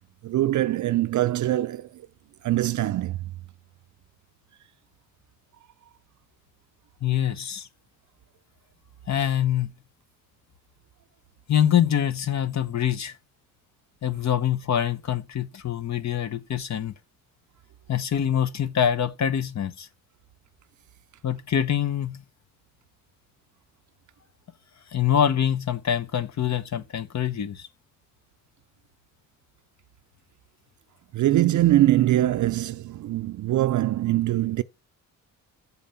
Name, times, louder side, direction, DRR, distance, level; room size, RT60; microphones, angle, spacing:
voice 1, 0.2-2.1 2.4-3.2 31.1-34.6, right 14 dB, 60° right, 0.5 m, -23 dB
voice 2, 7.0-7.7 9.1-9.7 11.5-13.1 14.0-16.9 17.9-19.9 21.2-22.2 24.9-27.7, left 9 dB, 55° left, 1.1 m, -25 dB
7.1 x 7.1 x 5.8 m
cardioid pair, 95°, 33 cm